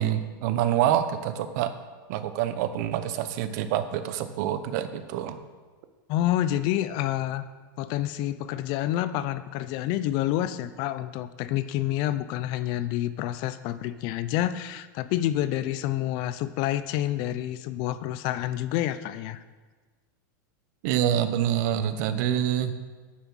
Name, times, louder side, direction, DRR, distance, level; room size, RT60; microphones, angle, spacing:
voice 1, 0.0-1.7 2.1-5.4 20.8-22.7, right 10 dB, 55° right, 10 dB, 0.9 m, -26 dB
voice 2, 6.1-7.5 7.8-19.4, left 13 dB, 45° left, 14 dB, 0.5 m, -28 dB
9.3 x 7.0 x 6.3 m, 1.4 s
supercardioid pair, 150°, 11 cm